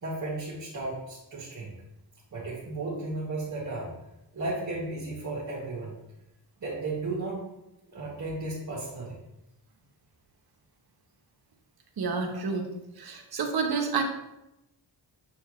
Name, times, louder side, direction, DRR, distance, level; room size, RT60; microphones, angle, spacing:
voice 1, 0.0-1.7 2.3-3.9 4.3-5.9 6.6-7.4 7.9-9.2 12.3-12.4, right 2 dB, 45° right, -6 dB, 1.7 m, -34 dB
voice 2, 12.0-12.7 13.0-14.0, right 5 dB, 60° right, 3 dB, 1.1 m, -29 dB
7.5 x 4.7 x 3.1 m, 0.90 s
wide cardioid pair, 115°, 42 cm